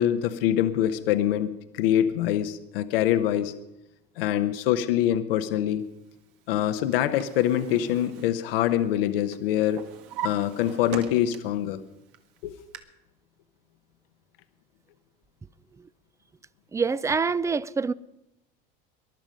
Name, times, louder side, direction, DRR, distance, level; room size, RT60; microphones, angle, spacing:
voice 1, 0.0-3.5 4.2-5.8 6.5-9.8 10.2-11.8 12.4-12.5, left 11 dB, 80° left, 1.0 m, -24 dB
Drawer open or close, 6.6-9.0 9.3-11.7 12.1-12.8, right 10 dB, 75° right, 1.7 m, -40 dB
voice 2, 16.7-17.9, right 5 dB, 10° right, 0.4 m, -25 dB
21.5 x 11.5 x 5.3 m
hypercardioid pair, 95°, 29 cm